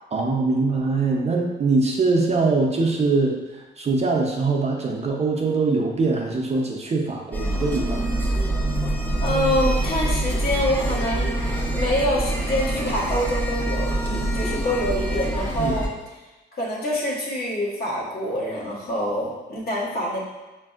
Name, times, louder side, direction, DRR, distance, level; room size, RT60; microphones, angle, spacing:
voice 1, 0.1-8.2 15.6-15.8, right 3 dB, 35° right, 0 dB, 0.5 m, -23 dB
sound 1, 7.3-15.9, right 1 dB, 10° left, 0.6 m, -25 dB
voice 2, 9.2-11.3 11.7-15.9 16.5-20.2, left 1 dB, 50° left, -4 dB, 1.1 m, -26 dB
5.2 x 2.5 x 2.4 m, 1.1 s
cardioid pair, 90°, 20 cm